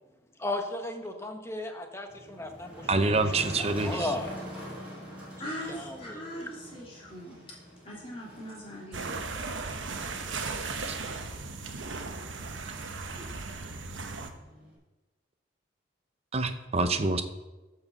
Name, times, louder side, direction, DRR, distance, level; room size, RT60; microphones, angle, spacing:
voice 1, 0.4-3.2 3.6-4.3 5.4-6.5, left 2 dB, 15° left, 4 dB, 1.0 m, -36 dB
Motor vehicle (road), 2.1-14.7, equal, 5° right, 4.2 m, -45 dB
voice 2, 2.9-4.1 10.8-11.0 13.2-13.3 16.3-17.2, right 3 dB, 30° right, 9 dB, 0.7 m, -27 dB
voice 3, 5.4-7.4 7.8-9.2, equal, 30° left, -4 dB, 3.0 m, -40 dB
sound 1, 8.9-14.3, right 4 dB, 75° right, 1.1 m, -36 dB
13.5 x 4.7 x 7.1 m, 1.1 s
head